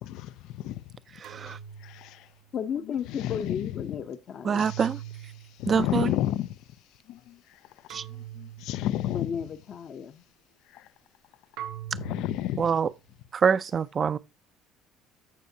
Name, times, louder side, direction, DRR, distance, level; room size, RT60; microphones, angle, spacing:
voice 1, 0.0-1.0 1.5-1.6 1.8-2.3 2.8-3.9 4.6-4.9 5.3-6.7 7.0-9.4 10.7-10.9 11.9-12.7, left 13 dB, 70° left, 0.4 m, -33 dB
voice 2, 1.2-1.6 4.4-5.0 5.7-6.1 7.9-8.0 12.6-12.9 13.3-14.2, right 6 dB, 30° right, 0.4 m, -25 dB
sound 1, 1.2-2.7 4.5-5.6 7.9-8.9 11.6-12.6, right 11 dB, 85° right, 1.7 m, -42 dB
voice 3, 2.5-4.7 9.1-10.2, left 7 dB, 40° left, 0.7 m, -34 dB
15.0 x 5.5 x 2.8 m
cardioid pair, 145°, 0 cm